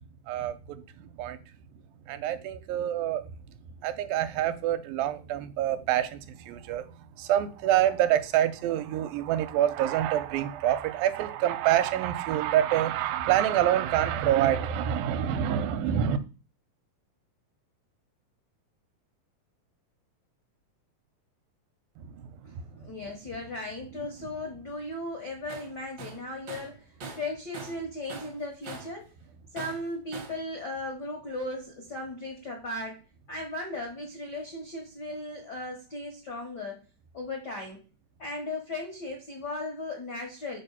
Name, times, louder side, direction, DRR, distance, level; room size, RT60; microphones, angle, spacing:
voice 1, 0.3-1.4 2.1-3.2 3.8-16.2 22.0-22.9, right 11 dB, 85° right, 2.3 m, -27 dB
voice 2, 22.7-29.1 29.5-33.0 33.3-36.8 37.1-37.8 38.2-40.6, left 2 dB, 75° left, 0.9 m, -37 dB
Tools, 25.5-25.7 26.0-27.8 28.1-29.0 29.6-30.4, right 4 dB, 65° right, 1.0 m, -42 dB
5.2 x 4.4 x 5.5 m
omnidirectional pair, 4.1 m